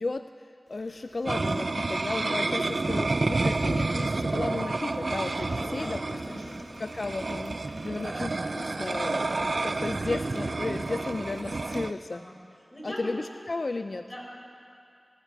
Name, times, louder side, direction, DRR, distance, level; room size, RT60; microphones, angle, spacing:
voice 1, 0.0-6.0 6.8-12.2 12.8-14.0, left 3 dB, 65° left, 9 dB, 0.3 m, -34 dB
sound 1, 0.7-11.9, left 1 dB, 45° left, 1.9 m, -51 dB
sound 2, 1.3-11.9, right 3 dB, 65° right, 0.4 m, -30 dB
voice 2, 5.3-6.6 9.0-9.3 12.1-12.3 12.7-13.1 14.0-14.2, equal, 20° left, -2 dB, 4.2 m, -41 dB
18.0 x 14.0 x 4.6 m, 2.4 s
wide cardioid pair, 50°, 0 cm